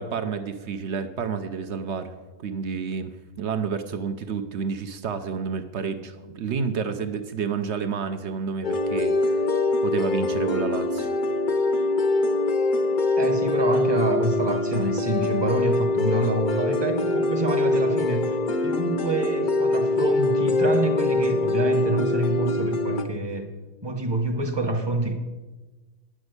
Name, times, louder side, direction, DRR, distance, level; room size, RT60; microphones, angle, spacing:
voice 1, 0.0-2.1 2.4-9.5 9.8-11.1, right 6 dB, 60° right, 8 dB, 0.8 m, -30 dB
sound 1, 8.6-23.0, left 2 dB, 45° left, 0.7 m, -23 dB
voice 2, 13.2-18.4 18.6-23.5 23.8-25.1, right 2 dB, 20° right, 5 dB, 0.9 m, -27 dB
9.8 x 6.2 x 8.0 m, 1.2 s
omnidirectional pair, 1.7 m